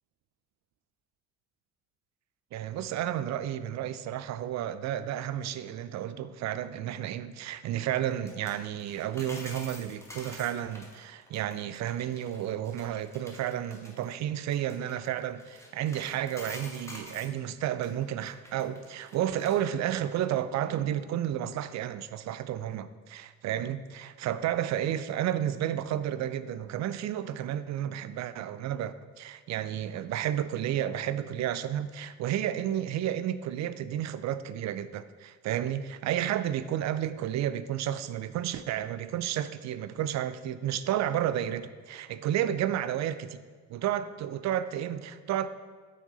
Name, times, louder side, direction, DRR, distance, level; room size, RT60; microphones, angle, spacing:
voice 1, 2.5-43.4 43.7-45.5, right 11 dB, 45° right, 14 dB, 0.4 m, -32 dB
sound 1, 8.1-17.3 17.8-19.6 19.9-20.1, left 1 dB, 5° left, 1.4 m, -48 dB
6.3 x 5.8 x 4.1 m, 1.5 s
hypercardioid pair, 60°, 38 cm